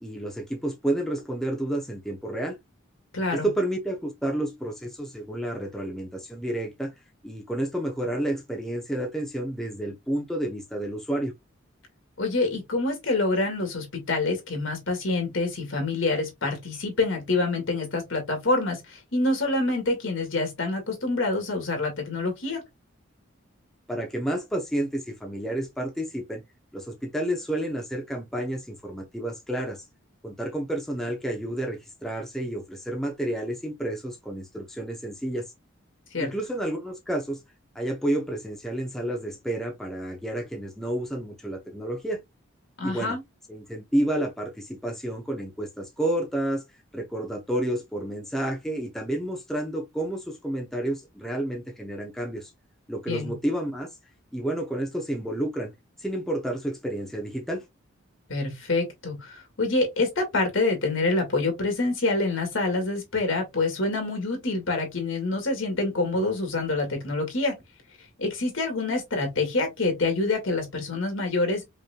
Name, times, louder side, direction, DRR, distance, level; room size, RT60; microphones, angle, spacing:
voice 1, 0.0-2.6 3.3-6.9 7.2-11.3 23.9-26.4 26.7-29.8 30.2-35.5 36.2-37.4 37.7-42.2 42.8-43.2 43.5-46.6 46.9-52.5 52.9-53.9 54.3-55.7 56.0-57.6, right 1 dB, ahead, 0.7 m, -30 dB
voice 2, 3.1-3.5 12.2-22.6 36.1-36.3 42.8-43.2 53.1-53.3 58.3-67.5 68.2-71.6, left 2 dB, 65° left, 1.9 m, -26 dB
5.3 x 3.1 x 2.2 m
head